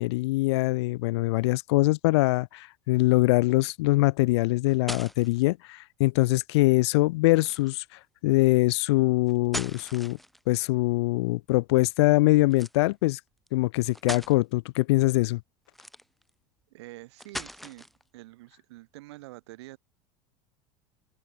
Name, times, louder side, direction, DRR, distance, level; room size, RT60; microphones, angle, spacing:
voice 1, 0.0-7.8 8.2-10.2 10.5-13.2 13.5-15.4, left 21 dB, 80° left, 0.7 m, -23 dB
sound 1, 4.7-5.4 7.4-7.8 9.3-10.6 12.5-12.8 13.5-13.6 13.9-14.4 15.7-16.3 17.2-18.0, equal, ahead, 1.4 m, -39 dB
voice 2, 16.7-17.9 18.1-19.8, right 19 dB, 80° right, 3.7 m, -46 dB
supercardioid pair, 105°, 14 cm